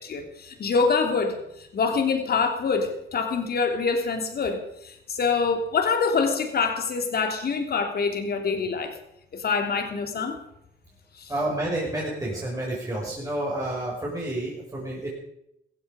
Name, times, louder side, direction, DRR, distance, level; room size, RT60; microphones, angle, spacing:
voice 1, 0.0-8.9 9.3-10.4 11.2-11.3, left 5 dB, 50° left, 5 dB, 3.2 m, -25 dB
voice 2, 11.3-15.1, right 1 dB, 15° right, -4 dB, 5.6 m, -29 dB
16.0 x 15.0 x 5.2 m, 0.79 s
cardioid pair, 90°, 20 cm